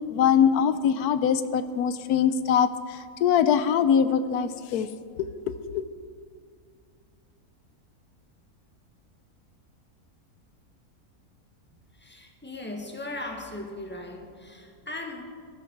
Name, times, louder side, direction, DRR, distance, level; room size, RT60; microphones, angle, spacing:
voice 1, 0.1-4.9 5.2-5.8, left 8 dB, 85° left, 12 dB, 1.2 m, -23 dB
voice 2, 11.9-15.2, left 2 dB, 5° left, 2 dB, 1.6 m, -38 dB
19.0 x 11.5 x 4.6 m, 2.1 s
omnidirectional pair, 1.6 m